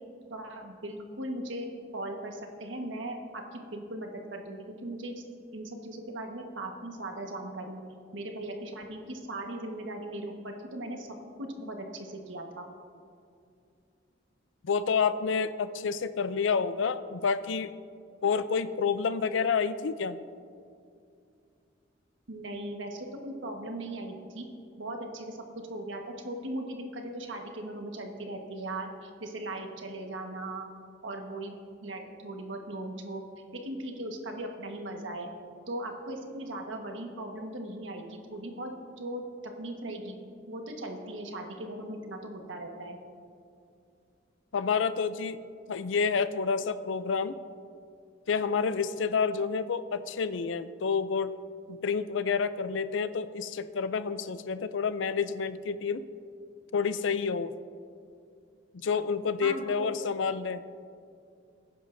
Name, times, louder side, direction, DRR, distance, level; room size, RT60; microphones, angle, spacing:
voice 1, 0.3-5.2 5.5-7.8 8.1-11.1 11.4-12.6 22.3-24.5 24.8-25.4 25.7-30.7 31.0-33.2 33.5-35.3 35.7-38.7 39.0-39.2 39.6-40.2 40.5-43.0 59.4-59.9, right 1 dB, 90° right, 3 dB, 1.4 m, -38 dB
voice 2, 14.6-17.7 18.2-20.2 44.5-45.4 45.7-47.3 48.3-51.3 51.7-56.1 56.7-57.5 58.8-60.6, left 5 dB, 85° left, 13 dB, 0.5 m, -29 dB
20.0 x 10.0 x 2.7 m, 2.4 s
head